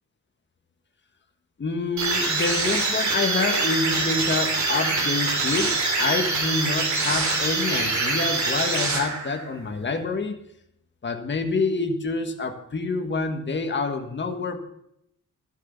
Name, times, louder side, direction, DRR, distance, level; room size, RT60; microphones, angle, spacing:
voice 1, 1.6-10.4 11.0-14.6, left 3 dB, 35° left, 5 dB, 1.6 m, -27 dB
sound 1, 2.0-9.5, right 3 dB, 65° right, 3.2 m, -24 dB
15.0 x 6.5 x 8.3 m, 0.75 s
wide cardioid pair, 175°, 31 cm